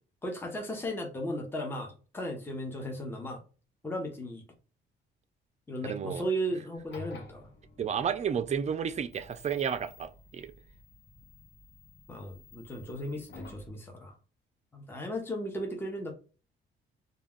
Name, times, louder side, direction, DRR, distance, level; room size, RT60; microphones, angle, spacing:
voice 1, 0.2-3.4 3.8-4.4 5.7-7.5 12.1-14.1 14.7-16.1, equal, 10° left, 0.7 m, -36 dB
voice 2, 5.8-6.2 7.8-10.5, right 7 dB, 35° right, 0.4 m, -32 dB
sound 1, 6.8-13.7, left 2 dB, 60° left, 0.9 m, -52 dB
2.3 x 2.2 x 3.5 m
cardioid pair, 90°, 20 cm